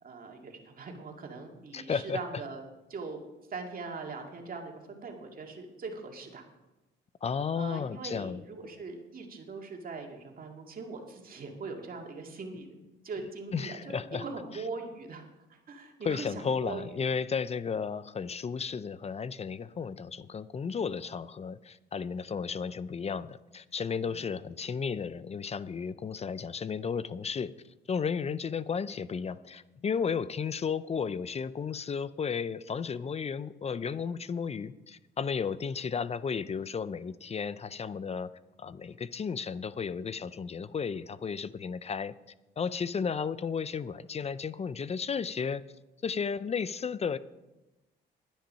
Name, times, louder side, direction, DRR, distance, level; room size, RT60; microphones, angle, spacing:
voice 1, 0.0-2.6 2.9-3.2 3.5-6.4 7.5-12.7 13.0-16.9 24.0-24.3, right 4 dB, 45° right, 2 dB, 2.2 m, -41 dB
voice 2, 1.7-2.2 7.2-8.4 13.5-14.2 16.0-27.5 27.9-38.3 38.6-42.1 42.6-45.6 46.0-47.2, left 6 dB, 30° left, 16 dB, 0.5 m, -33 dB
10.5 x 10.5 x 5.6 m, 1.0 s
cardioid pair, 90°, 20 cm